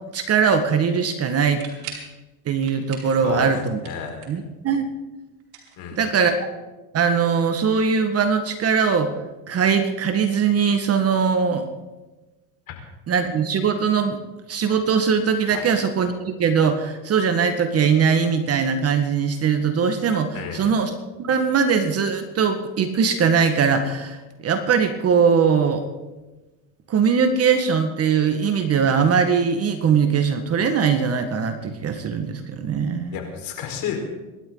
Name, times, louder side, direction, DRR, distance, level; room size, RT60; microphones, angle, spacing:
voice 1, 0.1-1.6 2.4-3.8 4.3-4.8 5.9-6.3 6.9-9.1 9.5-11.7 13.1-14.2 14.5-20.9 21.2-25.8 26.9-33.2, right 6 dB, 35° right, 7 dB, 1.7 m, -21 dB
sound 1, 1.5-2.1 2.6-3.2 3.5-4.5 5.4-6.3, right 7 dB, 80° right, 5.1 m, -40 dB
voice 2, 3.8-4.3 5.8-6.2 12.7-12.8 15.5-15.7 20.3-20.7 33.1-34.0, left 8 dB, 50° left, 2 dB, 4.8 m, -32 dB
26.5 x 12.0 x 4.0 m, 1.1 s
supercardioid pair, 110°, 44 cm